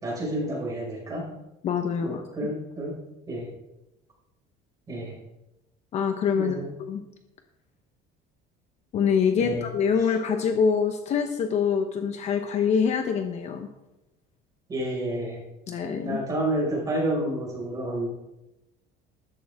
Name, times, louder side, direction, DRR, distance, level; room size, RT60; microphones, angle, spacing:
voice 1, 0.0-1.3 2.0-3.0 3.3-3.5 4.9-5.2 6.4-6.7 9.4-9.7 14.7-15.4 16.0-18.1, right 1 dB, 20° right, -3 dB, 5.2 m, -29 dB
voice 2, 1.6-2.2 5.9-6.6 6.9-7.0 8.9-13.7 15.7-16.2, left 6 dB, 35° left, 6 dB, 0.9 m, -25 dB
13.5 x 13.5 x 3.6 m, 0.95 s
cardioid pair, 180°, 19 cm